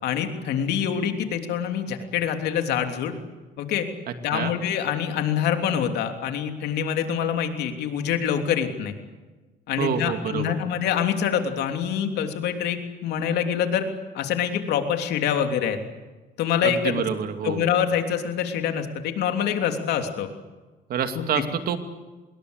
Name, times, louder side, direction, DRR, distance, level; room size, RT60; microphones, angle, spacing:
voice 1, 0.0-3.1 3.6-3.9 4.2-8.9 9.7-12.8 13.0-13.8 14.1-15.8 16.4-17.0 17.4-20.3, left 8 dB, 80° left, 5 dB, 3.2 m, -25 dB
voice 2, 9.8-10.5 16.6-17.7 20.9-21.8, right 7 dB, 60° right, 7 dB, 2.6 m, -27 dB
25.0 x 21.5 x 8.2 m, 1.2 s
cardioid pair, 110°, 17 cm